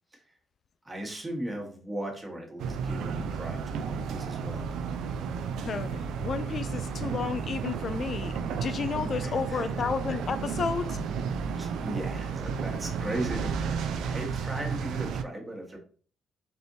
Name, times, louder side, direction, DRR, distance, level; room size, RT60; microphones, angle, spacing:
voice 1, 0.8-4.7 9.2-9.7 11.6-15.8, right 1 dB, 15° right, 1.4 m, -37 dB
sound 1, 2.6-15.2, right 6 dB, 80° right, 0.4 m, -32 dB
voice 2, 5.6-8.3 8.6-11.0, left 5 dB, 50° left, 0.3 m, -32 dB
4.2 x 3.4 x 2.7 m
cardioid pair, 90°, 0 cm